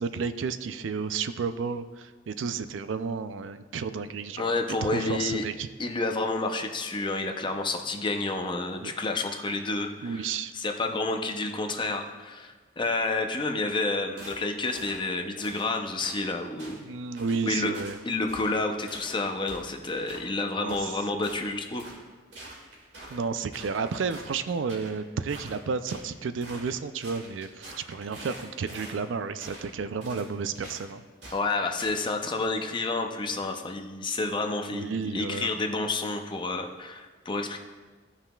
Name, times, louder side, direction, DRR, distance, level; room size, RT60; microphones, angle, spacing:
voice 1, 0.0-4.4 4.8-5.7 7.4-7.5 8.8-8.9 10.0-10.5 16.8-18.0 20.5-21.0 23.1-31.0 34.7-35.5, right 5 dB, 80° right, 11 dB, 0.4 m, -32 dB
voice 2, 4.4-5.4 5.8-10.3 10.5-16.8 17.4-17.7 18.0-21.9 31.3-37.6, left 3 dB, 25° left, 4 dB, 0.6 m, -29 dB
sound 1, 14.2-14.4 14.7-15.0 15.4-15.7 16.0-16.2 16.6-16.8 17.2-17.4 17.7-18.0 18.3-18.6 18.9-19.1 19.5-20.2 20.7-20.8 21.2-22.0 22.3-23.2 23.5-24.9 25.3-26.1 26.4-26.7 27.0-29.0 29.4-29.7 30.0-30.3 30.5-30.8 31.2-31.4 31.8-32.0, right 1 dB, 65° right, 2.1 m, -45 dB
15.0 x 5.6 x 2.3 m, 1.4 s
head